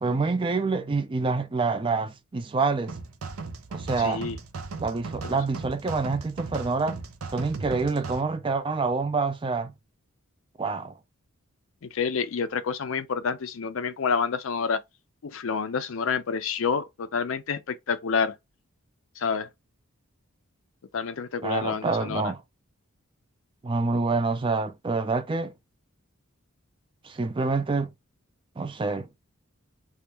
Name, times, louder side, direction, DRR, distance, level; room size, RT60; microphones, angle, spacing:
voice 1, 0.0-3.0 3.7-4.3 4.8-7.0 7.3-9.7 10.6-10.9 21.4-22.4 23.6-25.5 27.0-27.9 28.6-29.1, right 4 dB, 25° right, 0.4 m, -27 dB
sound 1, 2.9-8.2, right 4 dB, 75° right, 0.5 m, -37 dB
voice 2, 4.0-4.4 5.2-5.3 11.8-14.8 15.2-18.3 19.2-19.5 20.9-22.3, left 5 dB, 65° left, 0.5 m, -28 dB
3.5 x 2.3 x 2.9 m
head